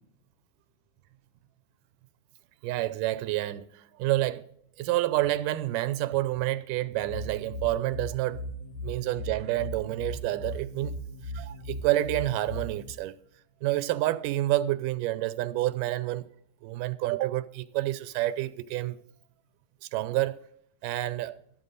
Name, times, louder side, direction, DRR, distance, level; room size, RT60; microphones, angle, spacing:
voice 1, 2.6-4.4 4.8-8.4 8.8-11.0 11.3-13.2 13.6-16.3 16.6-19.0 19.8-20.4 20.8-21.4, right 16 dB, 90° right, 2.3 m, -29 dB
sound 1, 6.9-12.9, equal, 60° left, 2.8 m, -38 dB
13.0 x 12.5 x 4.0 m
omnidirectional pair, 3.7 m